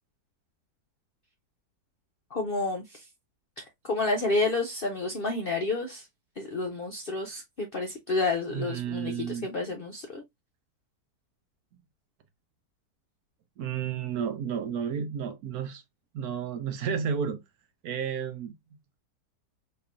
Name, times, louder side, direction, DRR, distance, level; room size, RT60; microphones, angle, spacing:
voice 1, 2.3-3.0 3.6-6.1 6.4-10.2, left 3 dB, 65° left, 0.5 m, -30 dB
voice 2, 8.5-9.5 13.6-15.8 16.1-17.4 17.8-18.5, right 7 dB, 70° right, 1.1 m, -32 dB
4.3 x 2.9 x 2.4 m
omnidirectional pair, 1.8 m